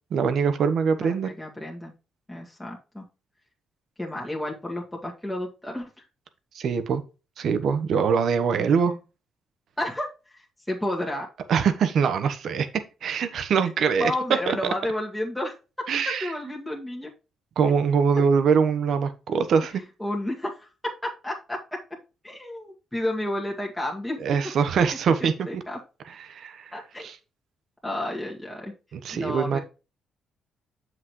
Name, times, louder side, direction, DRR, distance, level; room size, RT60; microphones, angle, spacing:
voice 1, 0.1-1.3 6.5-7.0 7.4-8.9 11.5-12.7 13.0-14.1 14.5-14.6 15.9-16.3 17.6-19.8 24.2-25.6 26.2-26.6 27.0-27.1 28.9-29.6, right 6 dB, 65° right, 11 dB, 1.1 m, -23 dB
voice 2, 1.0-1.9 2.3-3.0 4.0-6.1 8.6-9.0 9.8-11.3 14.0-15.5 16.1-17.1 20.0-21.8 22.2-24.2 25.2-25.8 26.7-27.1 27.8-28.7 29.1-29.6, left 1 dB, 5° left, -2 dB, 2.0 m, -31 dB
7.5 x 6.3 x 3.1 m, 0.30 s
cardioid pair, 90°, 0 cm